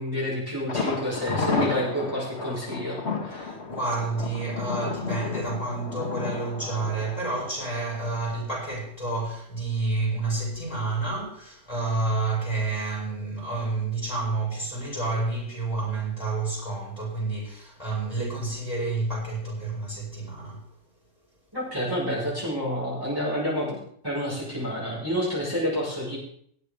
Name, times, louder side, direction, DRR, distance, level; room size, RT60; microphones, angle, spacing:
voice 1, 0.0-3.5 21.5-26.2, equal, 15° right, 5.6 m, -29 dB
Thunder, 0.7-8.5 8.8-8.9 9.3-9.4, left 4 dB, 45° left, 1.7 m, -32 dB
voice 2, 3.3-20.6, right 3 dB, 25° left, 7.3 m, -29 dB
20.0 x 7.9 x 5.2 m
omnidirectional pair, 1.6 m